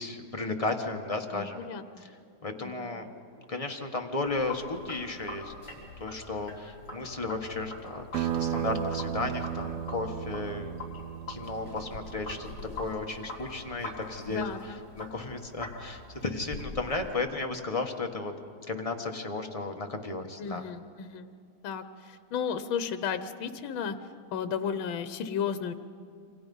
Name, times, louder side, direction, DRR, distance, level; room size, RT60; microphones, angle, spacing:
voice 1, 0.0-1.7 2.4-3.1 3.5-5.5 6.0-11.0 11.3-12.5 12.8-14.4 15.0-18.3 18.7-20.6, left 3 dB, 20° left, 3 dB, 1.3 m, -34 dB
voice 2, 1.3-2.1 2.6-3.0 14.3-14.8 20.4-21.3 21.6-25.7, left 7 dB, 80° left, 11 dB, 1.7 m, -34 dB
Sink (filling or washing), 4.3-17.1, left 2 dB, 45° left, 5.7 m, -43 dB
sound 1, 8.1-13.3, right 9 dB, 65° right, 1.2 m, -35 dB
28.5 x 25.5 x 5.5 m, 2.3 s
omnidirectional pair, 2.2 m